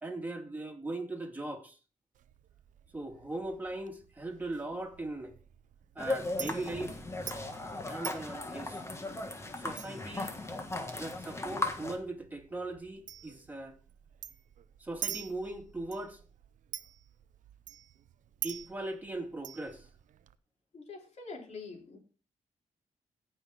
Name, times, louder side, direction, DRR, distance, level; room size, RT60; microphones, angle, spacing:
voice 1, 0.0-1.8 2.9-5.3 6.0-7.0 7.8-8.8 9.6-10.4 11.0-13.8 14.8-16.2 18.4-19.9, right 2 dB, 15° right, 2.3 m, -39 dB
Chink clink, 2.1-20.4, right 10 dB, 85° right, 0.6 m, -47 dB
Ping-Pong in the park - Stereo Ambience, 6.0-12.0, left 2 dB, 20° left, 1.6 m, -37 dB
voice 2, 20.7-22.0, left 4 dB, 60° left, 3.6 m, -45 dB
16.5 x 5.6 x 3.8 m
cardioid pair, 90°, 13 cm